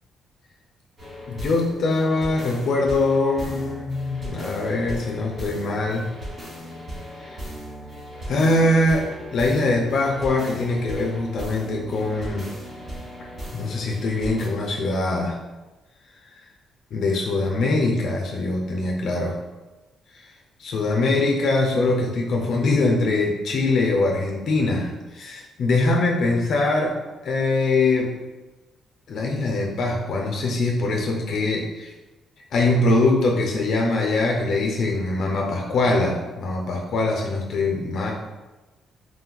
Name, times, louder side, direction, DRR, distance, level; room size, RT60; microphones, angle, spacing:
sound 1, 1.0-14.5, equal, 45° right, 1.2 m, -37 dB
voice 1, 1.3-6.1 8.3-12.5 13.5-15.4 16.9-19.4 20.6-28.2 29.1-31.9 32.5-38.1, left 2 dB, 70° left, 0 dB, 0.4 m, -22 dB
3.1 x 2.3 x 2.2 m, 1.1 s
cardioid pair, 90°, 0 cm